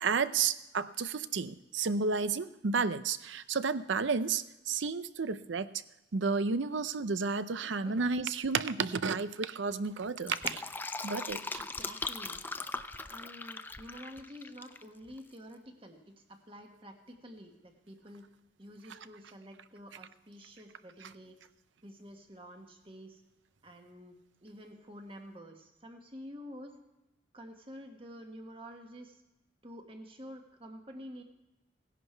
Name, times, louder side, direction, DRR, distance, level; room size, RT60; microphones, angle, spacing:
voice 1, 0.0-5.7 6.1-10.4 11.0-11.6, right 5 dB, 70° right, 14 dB, 0.6 m, -31 dB
Fill (with liquid), 10.0-14.8 15.1-15.2, left 3 dB, 10° left, 0.4 m, -40 dB
voice 2, 11.6-12.4 13.1-18.3 18.6-21.4 21.8-23.2 23.6-26.7 27.3-29.2 29.6-31.2, equal, 30° right, 4 dB, 1.5 m, -49 dB
17.0 x 11.0 x 4.5 m, 0.98 s
head